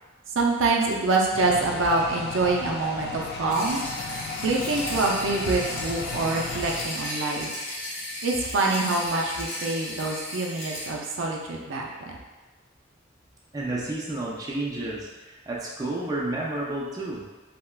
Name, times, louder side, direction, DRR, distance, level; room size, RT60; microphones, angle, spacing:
voice 1, 0.3-3.8 4.4-7.5 8.2-12.2, right 3 dB, 80° right, -1 dB, 0.5 m, -25 dB
sound 1, 1.3-6.9, left 4 dB, 55° left, 0.3 m, -35 dB
sound 2, 3.5-10.9, left 1 dB, 90° left, 0.9 m, -35 dB
voice 2, 13.5-17.2, right 2 dB, 20° right, -5 dB, 0.4 m, -31 dB
3.3 x 2.8 x 2.3 m, 1.2 s
head